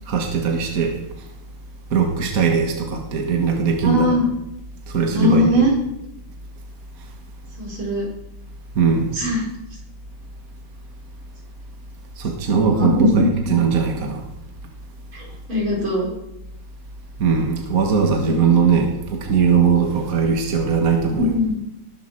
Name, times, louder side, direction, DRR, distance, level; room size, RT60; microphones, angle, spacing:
voice 1, 0.1-1.0 1.9-4.1 4.9-5.6 8.7-9.2 12.2-14.2 17.2-21.3, right 6 dB, 45° right, 2 dB, 1.8 m, -19 dB
voice 2, 3.8-4.3 5.1-5.7 7.6-8.1 9.1-9.5 12.5-13.3 15.1-16.1 18.3-18.4 21.2-21.6, left 1 dB, 70° right, -2 dB, 5.2 m, -20 dB
20.0 x 8.0 x 6.5 m, 0.91 s
omnidirectional pair, 2.3 m